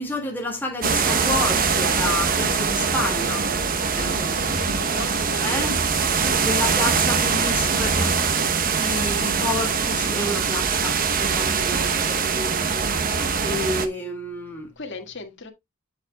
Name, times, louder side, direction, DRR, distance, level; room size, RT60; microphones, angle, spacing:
voice 1, 0.0-3.5 3.9-4.6 5.4-5.8 6.4-14.7, left 2 dB, 10° left, 2.0 m, -30 dB
sound 1, 0.8-13.9, right 5 dB, 45° right, 0.8 m, -23 dB
voice 2, 3.9-5.7 6.2-6.6 14.8-15.5, left 3 dB, 60° left, 1.7 m, -37 dB
8.7 x 8.0 x 2.2 m
head